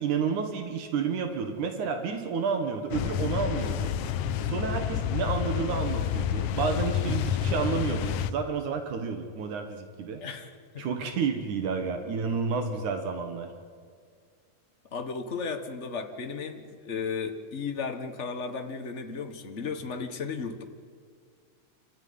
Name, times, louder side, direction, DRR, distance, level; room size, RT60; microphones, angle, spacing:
voice 1, 0.0-3.9 4.5-10.2 10.8-13.5, right 5 dB, 80° right, 6 dB, 3.0 m, -30 dB
sound 1, 2.9-8.3, left 9 dB, 80° left, 1.4 m, -29 dB
voice 2, 10.2-11.1 14.9-20.6, left 5 dB, 40° left, 6 dB, 1.1 m, -35 dB
27.0 x 13.5 x 9.5 m, 2.1 s
omnidirectional pair, 3.5 m